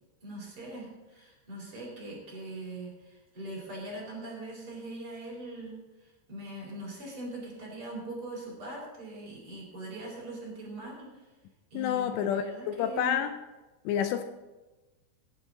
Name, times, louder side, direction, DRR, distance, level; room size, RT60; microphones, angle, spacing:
voice 1, 0.2-11.3 11.7-13.2, right 1 dB, 30° right, -3 dB, 4.4 m, -41 dB
voice 2, 11.7-13.3 13.9-14.2, left 9 dB, 80° left, 9 dB, 2.7 m, -29 dB
17.0 x 10.5 x 3.9 m, 1.1 s
omnidirectional pair, 5.2 m